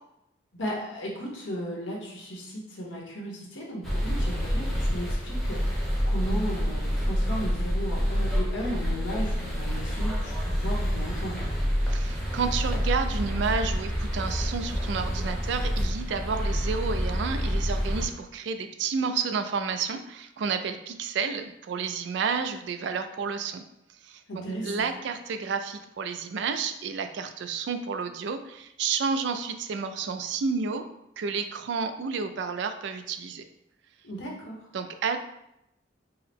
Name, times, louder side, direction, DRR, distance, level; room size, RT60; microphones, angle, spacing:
voice 1, 0.5-11.4 24.3-24.9 34.0-34.6, equal, 85° left, -2 dB, 1.1 m, -35 dB
sound 1, 3.8-18.1, equal, ahead, 0.8 m, -28 dB
voice 2, 11.8-23.6 24.0-24.2 24.6-30.9 31.2-33.4 34.7-35.2, right 5 dB, 65° right, 9 dB, 0.3 m, -30 dB
4.5 x 2.0 x 3.4 m, 0.83 s
head